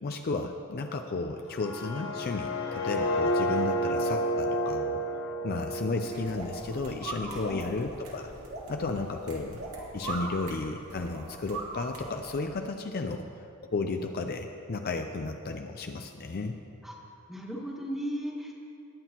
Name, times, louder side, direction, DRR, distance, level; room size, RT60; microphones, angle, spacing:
voice 1, 0.0-5.0 5.4-8.3 8.7-9.6 9.9-13.3 13.7-16.6, left 3 dB, 45° left, 5 dB, 0.5 m, -33 dB
sound 1, 1.4-7.4, equal, 65° left, 1.0 m, -31 dB
sound 2, 6.1-12.6, right 2 dB, 80° right, 2.1 m, -40 dB
voice 2, 7.3-7.8 16.8-17.0 17.3-18.5, equal, ahead, -3 dB, 1.6 m, -36 dB
19.0 x 9.0 x 2.9 m, 2.7 s
head